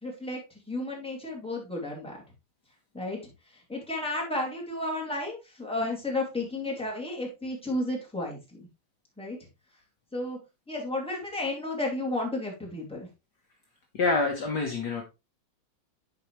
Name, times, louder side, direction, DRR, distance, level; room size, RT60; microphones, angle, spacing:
voice 1, 0.0-0.4 0.7-2.2 2.9-3.3 3.7-8.7 9.2-9.4 10.1-10.4 10.7-13.1, left 2 dB, 5° left, -2 dB, 2.5 m, -32 dB
voice 2, 13.9-15.0, left 3 dB, 55° left, 1 dB, 1.6 m, -26 dB
10.5 x 4.9 x 3.1 m, 0.26 s
omnidirectional pair, 2.3 m